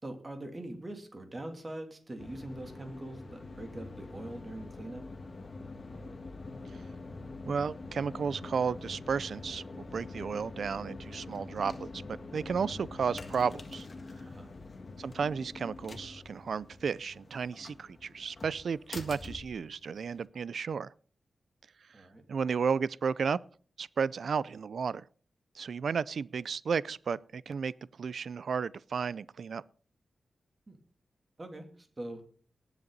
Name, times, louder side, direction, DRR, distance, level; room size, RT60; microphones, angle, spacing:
voice 1, 0.0-5.0 14.2-14.5 21.9-22.2 30.7-30.8 31.4-32.2, right 1 dB, 25° right, 3.0 m, -43 dB
sound 1, 2.2-20.3, left 3 dB, 40° left, 1.8 m, -45 dB
voice 2, 7.4-12.0 12.3-13.9 15.0-20.9 22.3-23.4 23.8-25.0 25.5-27.7 28.0-29.6, right 6 dB, 70° right, 0.5 m, -33 dB
19.0 x 8.2 x 4.0 m
wide cardioid pair, 120°, 0 cm